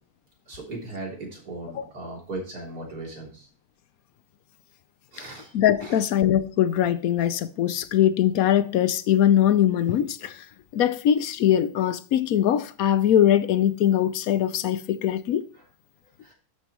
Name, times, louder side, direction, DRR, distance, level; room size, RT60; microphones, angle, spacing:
voice 1, 0.5-3.5 5.1-5.5 5.8-6.0 15.5-15.6 16.2-16.3, right 2 dB, 85° right, 4.1 m, -37 dB
voice 2, 5.5-10.3 10.7-15.4, left 10 dB, 70° left, 1.1 m, -21 dB
13.0 x 6.0 x 3.0 m
omnidirectional pair, 1.6 m